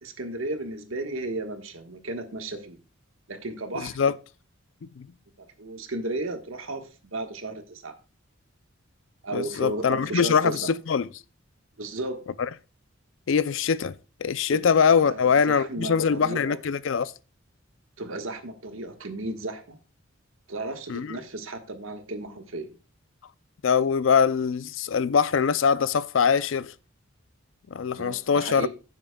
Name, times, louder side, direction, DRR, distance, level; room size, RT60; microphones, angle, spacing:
voice 1, 0.0-2.8 3.3-4.0 5.4-7.9 9.2-10.7 11.8-12.2 14.5-14.6 15.0-16.6 18.0-19.8 20.5-22.7 27.9-28.7, right 2 dB, 80° right, 1.4 m, -34 dB
voice 2, 3.8-4.1 5.0-5.1 9.3-11.1 12.4-12.5 13.3-14.0 14.2-17.1 20.9-21.1 23.6-26.7 27.7-28.7, left 6 dB, 65° left, 0.4 m, -23 dB
15.0 x 7.3 x 2.3 m
head